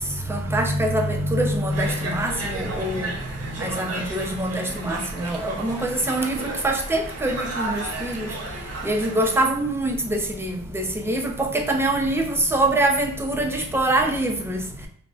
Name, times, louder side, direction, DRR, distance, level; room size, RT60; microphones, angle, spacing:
voice 1, 0.3-3.1 3.6-8.3 8.8-14.6, right 1 dB, 10° right, 3 dB, 0.4 m, -24 dB
Conversation, 1.7-9.4, right 2 dB, 45° right, 0.7 m, -33 dB
3.6 x 2.1 x 2.3 m, 0.66 s
cardioid pair, 105°, 33 cm